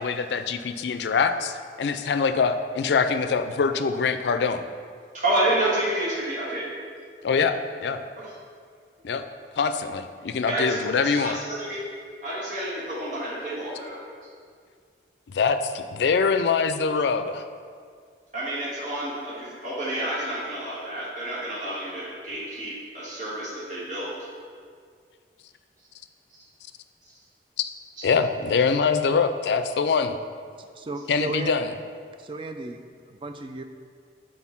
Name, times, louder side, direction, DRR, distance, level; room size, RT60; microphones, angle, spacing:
voice 1, 0.0-4.7 7.2-8.0 9.0-9.2 9.6-11.4 15.3-17.4 27.6-27.7 28.0-30.2 31.1-31.7, left 5 dB, 75° left, 10 dB, 0.4 m, -24 dB
voice 2, 5.2-6.7 10.5-11.8 12.2-14.0 18.3-24.1 28.0-28.1, right 1 dB, 45° right, -9 dB, 1.7 m, -29 dB
voice 3, 30.6-31.5 32.2-33.6, right 3 dB, 30° right, 6 dB, 0.3 m, -35 dB
6.3 x 3.7 x 5.7 m, 2.1 s
head